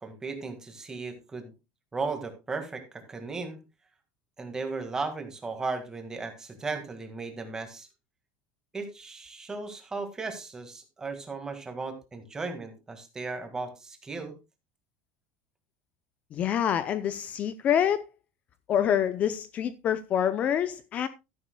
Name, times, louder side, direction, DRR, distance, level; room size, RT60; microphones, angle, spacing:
voice 1, 0.0-1.5 1.9-3.6 4.4-7.9 8.7-14.4, right 4 dB, 15° right, 1.8 m, -36 dB
voice 2, 16.3-18.0 18.7-21.1, left 9 dB, 30° left, 0.5 m, -26 dB
12.5 x 11.0 x 2.2 m
cardioid pair, 160°, 5 cm